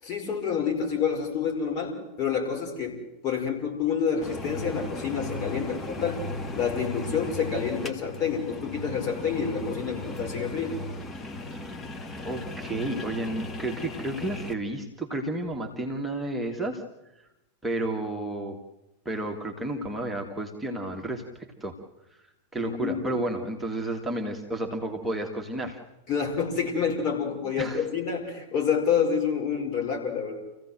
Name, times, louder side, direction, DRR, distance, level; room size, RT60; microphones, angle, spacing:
voice 1, 0.0-6.2 6.5-10.8 22.6-23.1 26.1-30.4, left 6 dB, 40° left, 2 dB, 5.4 m, -28 dB
sound 1, 4.2-14.5, left 2 dB, 15° left, 1.8 m, -36 dB
voice 2, 12.2-16.8 17.6-18.6 19.1-21.7 22.5-25.8 27.6-27.8, right 1 dB, 5° right, 0 dB, 2.1 m, -31 dB
28.0 x 16.0 x 7.7 m, 0.99 s
figure-of-eight pair, 90°, 0 cm